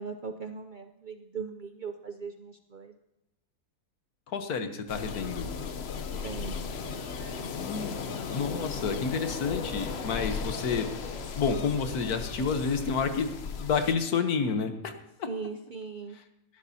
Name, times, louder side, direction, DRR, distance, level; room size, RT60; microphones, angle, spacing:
voice 1, 0.0-2.9 6.2-6.6 15.3-16.2, right 5 dB, 75° right, 7 dB, 0.4 m, -39 dB
voice 2, 4.3-5.5 7.5-10.9 11.3-14.9 15.2-15.3, left 5 dB, 75° left, 8 dB, 1.5 m, -30 dB
sound 1, 4.9-13.9, left 6 dB, 55° left, 0.8 m, -36 dB
sound 2, 6.1-13.0, left 2 dB, 30° left, 1.4 m, -44 dB
18.5 x 11.5 x 2.8 m, 0.92 s
omnidirectional pair, 1.6 m